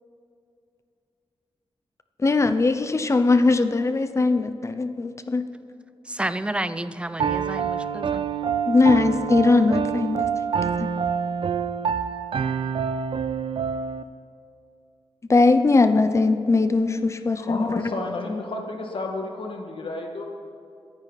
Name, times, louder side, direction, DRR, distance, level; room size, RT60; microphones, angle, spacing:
voice 1, 2.2-5.5 8.7-10.3 10.6-10.9 15.3-17.9, left 3 dB, 30° left, 9 dB, 0.7 m, -20 dB
voice 2, 6.1-8.3, right 1 dB, 10° right, 12 dB, 0.5 m, -30 dB
Piano, 7.2-14.0, right 7 dB, 65° right, 0.5 m, -26 dB
voice 3, 17.4-20.3, left 2 dB, 60° left, 2 dB, 1.9 m, -31 dB
24.0 x 9.8 x 4.1 m, 2.5 s
wide cardioid pair, 150°, 10 cm